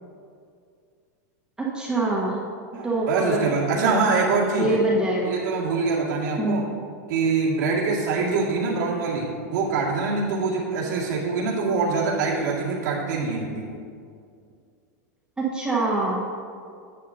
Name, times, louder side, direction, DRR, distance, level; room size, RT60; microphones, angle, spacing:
voice 1, 1.6-2.4 2.7-3.5 3.8-3.9 4.6-5.4 6.4-6.6 15.4-16.3, right 2 dB, 10° right, -5 dB, 1.3 m, -24 dB
voice 2, 2.7-4.8 5.3-6.6 7.1-13.8, right 4 dB, 75° right, -5 dB, 2.2 m, -24 dB
10.5 x 8.4 x 2.8 m, 2.3 s
supercardioid pair, 135°, 10 cm